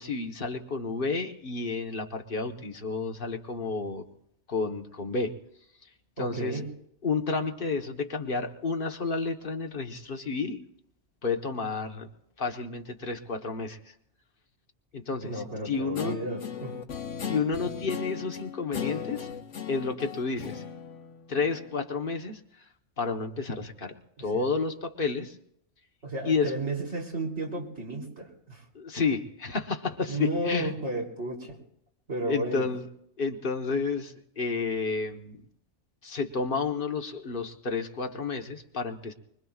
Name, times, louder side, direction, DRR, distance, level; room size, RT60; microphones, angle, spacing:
voice 1, 0.0-4.0 4.5-5.3 6.2-6.6 7.0-10.6 11.2-12.1 12.4-13.8 14.9-16.2 17.3-19.3 19.7-20.6 21.3-22.4 23.0-25.4 26.2-26.5 28.7-30.7 32.2-32.9 33.2-35.4 36.0-39.1, left 4 dB, 50° left, 4 dB, 1.4 m, -31 dB
voice 2, 6.2-6.7 15.2-16.8 24.2-24.5 26.0-28.6 30.1-31.6 32.1-32.7, right 1 dB, 65° right, -1 dB, 3.7 m, -33 dB
Guitar, 15.9-21.8, left 8 dB, 80° left, 1.4 m, -37 dB
24.5 x 22.5 x 2.4 m, 0.75 s
omnidirectional pair, 1.2 m